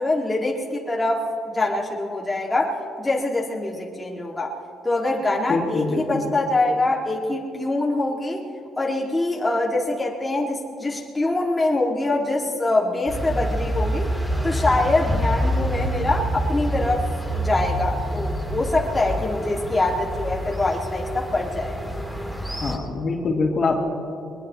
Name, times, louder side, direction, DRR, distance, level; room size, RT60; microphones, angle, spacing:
voice 1, 0.0-4.5 4.8-8.4 8.8-14.1 14.4-17.1 17.3-21.8, left 2 dB, 15° left, -3 dB, 2.1 m, -24 dB
voice 2, 5.5-6.3 22.5-23.8, left 3 dB, 45° left, -1 dB, 2.8 m, -24 dB
sound 1, 13.1-22.8, right 1 dB, 10° right, 3.5 m, -27 dB
22.5 x 21.0 x 3.1 m, 2.8 s
cardioid pair, 90°, 0 cm